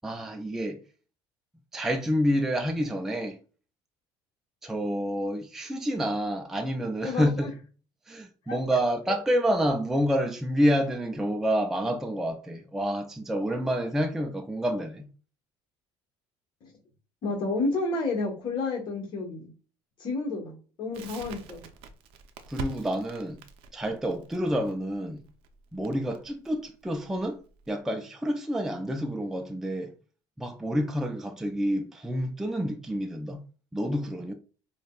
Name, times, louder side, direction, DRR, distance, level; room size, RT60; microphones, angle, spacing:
voice 1, 0.0-0.8 1.7-3.4 4.6-7.5 8.1-15.1 22.5-23.4 23.7-25.2 25.7-27.4 27.7-29.9 30.4-33.4 33.7-34.3, equal, 5° right, 0.3 m, -28 dB
voice 2, 7.0-7.5 8.5-8.8 9.1-9.2 16.6-16.7 17.2-19.5 20.0-21.6, left 3 dB, 55° left, 1.2 m, -31 dB
Crackle, 20.9-27.7, right 4 dB, 70° right, 0.5 m, -44 dB
5.0 x 2.1 x 2.3 m
cardioid pair, 125°, 10 cm